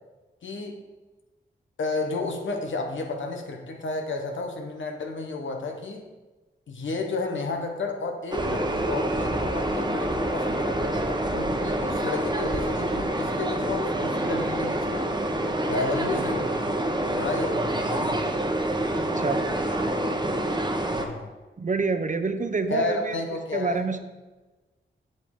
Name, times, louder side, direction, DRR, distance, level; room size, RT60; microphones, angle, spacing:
voice 1, 0.4-0.8 1.8-6.0 6.7-15.1 15.6-16.8 17.1-18.2 20.9-21.3 22.7-23.8, left 3 dB, 85° left, 3 dB, 1.1 m, -32 dB
sound 1, 8.3-21.1, right 1 dB, 25° right, 1.1 m, -27 dB
voice 2, 19.0-19.4 21.6-23.2 23.5-24.0, right 4 dB, 40° right, 9 dB, 0.7 m, -27 dB
7.8 x 6.7 x 3.7 m, 1.2 s
cardioid pair, 45°, 19 cm